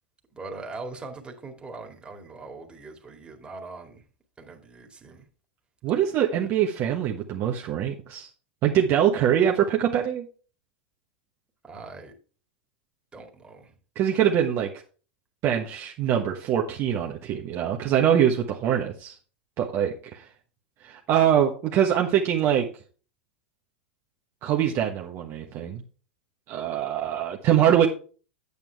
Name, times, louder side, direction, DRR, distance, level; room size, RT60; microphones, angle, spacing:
voice 1, 0.3-4.0 4.4-5.3 11.6-12.1 13.1-13.7, right 3 dB, 15° right, 3 dB, 2.2 m, -41 dB
voice 2, 5.8-8.3 8.6-10.2 13.9-14.7 15.4-19.1 19.6-20.2 20.8-22.7 24.4-25.8 26.5-27.9, right 9 dB, 40° right, 1 dB, 1.3 m, -23 dB
8.9 x 8.4 x 3.4 m, 0.38 s
hypercardioid pair, 100°, 6 cm